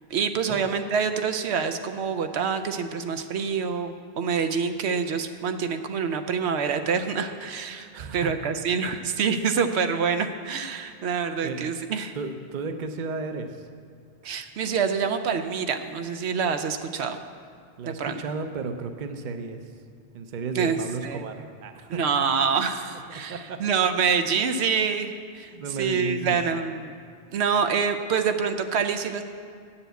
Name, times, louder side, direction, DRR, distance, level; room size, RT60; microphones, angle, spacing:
voice 1, 0.1-12.1 14.2-17.2 17.9-18.2 20.5-20.8 21.0-21.3 21.9-25.5 25.8-27.0 27.3-29.2, right 6 dB, 85° right, 8 dB, 0.9 m, -26 dB
voice 2, 7.9-8.5 11.4-11.8 12.1-13.7 17.8-19.7 20.1-22.0 23.1-23.6 25.5-26.4 26.7-26.8, right 4 dB, 50° right, 8 dB, 0.8 m, -34 dB
9.0 x 7.1 x 8.1 m, 2.2 s
omnidirectional pair, 1.1 m